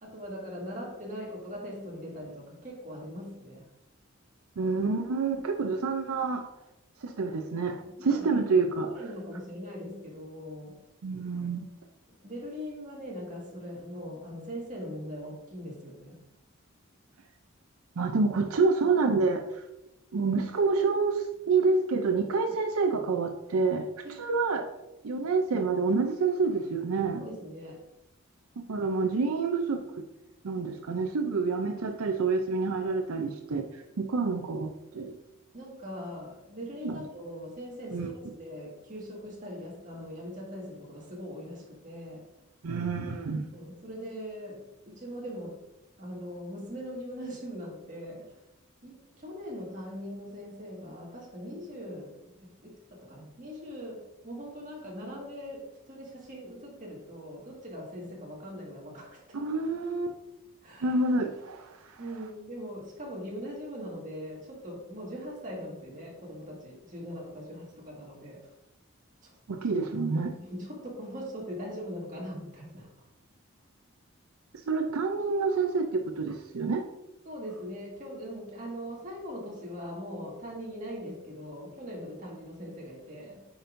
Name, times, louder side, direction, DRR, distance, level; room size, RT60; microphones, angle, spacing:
voice 1, 0.0-3.7 7.8-10.8 12.2-16.2 24.0-24.2 27.2-27.8 35.5-38.1 38.4-42.3 43.5-45.6 46.0-48.3 48.8-59.4 60.6-61.0 62.0-68.5 69.2-69.3 70.4-72.9 77.3-83.5, equal, 35° right, -3 dB, 1.9 m, -41 dB
voice 2, 4.6-6.5 7.0-8.9 11.0-11.7 18.0-19.6 20.1-23.9 24.2-24.7 25.0-27.2 28.6-29.8 30.4-33.7 34.0-35.2 36.8-37.0 37.9-38.1 42.6-43.5 59.3-60.2 60.8-62.0 69.5-70.3 74.7-76.9, right 4 dB, 85° right, 5 dB, 0.5 m, -28 dB
8.7 x 5.2 x 2.6 m, 0.92 s
head